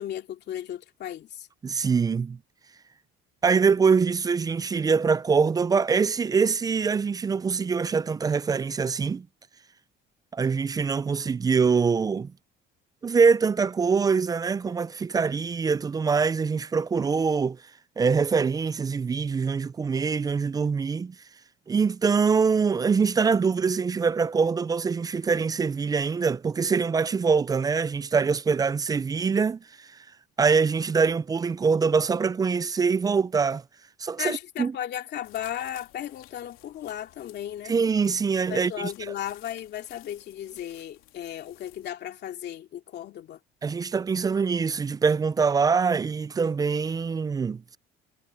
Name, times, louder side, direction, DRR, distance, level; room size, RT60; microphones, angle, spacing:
voice 1, 0.0-1.5 34.2-37.7 38.5-43.4, left 11 dB, 55° left, 2.6 m, -35 dB
voice 2, 1.6-2.4 3.4-9.3 10.3-12.3 13.0-17.6 18.0-21.1 21.7-29.6 30.4-33.6 34.0-34.7 37.7-38.9 43.6-47.6, right 5 dB, 20° right, 0.3 m, -24 dB
sound 1, 35.2-41.9, left 17 dB, 80° left, 3.1 m, -54 dB
cardioid pair, 125°, 21 cm